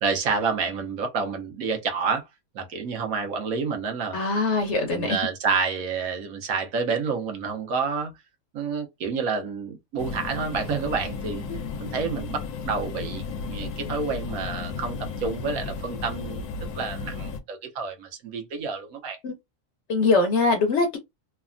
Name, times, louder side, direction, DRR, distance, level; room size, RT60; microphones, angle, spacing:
voice 1, 0.0-2.2 2.5-4.2 4.9-8.1 8.5-11.4 11.8-13.2 13.5-16.5 16.7-19.2, right 5 dB, 70° right, 1.1 m, -29 dB
voice 2, 4.1-5.2 19.2-19.4 19.9-21.0, left 3 dB, 65° left, 0.7 m, -22 dB
sound 1, 10.0-17.4, left 4 dB, 90° left, 1.1 m, -34 dB
3.2 x 2.2 x 2.4 m
omnidirectional pair, 1.6 m